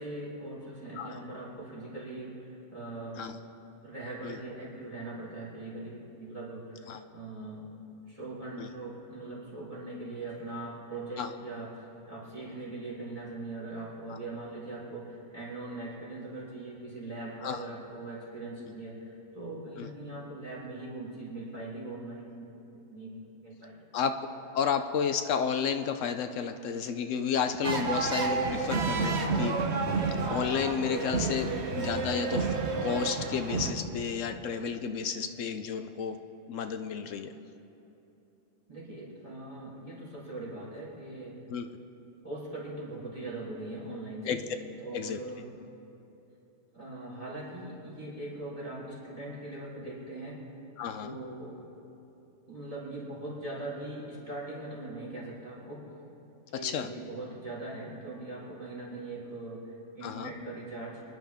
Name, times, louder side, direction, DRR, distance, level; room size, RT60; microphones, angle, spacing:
voice 1, 0.0-3.2 3.8-7.7 8.1-22.4 22.7-23.1 23.4-23.8 38.7-41.3 42.2-44.4 44.8-45.5 46.7-50.5 51.0-51.6 52.5-55.9 56.5-61.0, right 2 dB, 25° right, -7 dB, 4.0 m, -41 dB
voice 2, 24.5-29.5 30.3-31.5 31.8-32.5 32.8-36.2 36.5-37.3 41.5-41.7 44.3-44.4 44.9-45.2 50.8-51.1 56.6-56.9 60.0-60.3, left 7 dB, 75° left, 8 dB, 1.0 m, -31 dB
sound 1, 27.6-33.7, right 4 dB, 60° right, 1.2 m, -30 dB
25.0 x 11.0 x 3.5 m, 3.0 s
omnidirectional pair, 1.3 m